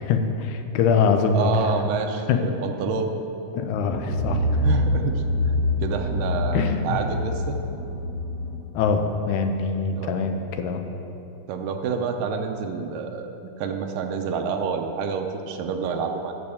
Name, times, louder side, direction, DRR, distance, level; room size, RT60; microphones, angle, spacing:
voice 1, 0.0-1.5 2.3-2.4 3.5-4.6 6.5-7.0 8.7-10.8, left 5 dB, 80° left, 6 dB, 2.1 m, -23 dB
voice 2, 1.3-3.1 4.1-7.6 9.9-10.3 11.5-16.3, right 5 dB, 85° right, 4 dB, 2.3 m, -28 dB
sound 1, 3.7-8.6, left 1 dB, 40° right, 3.5 m, -25 dB
8.5 x 7.0 x 6.9 m, 2.9 s
omnidirectional pair, 3.7 m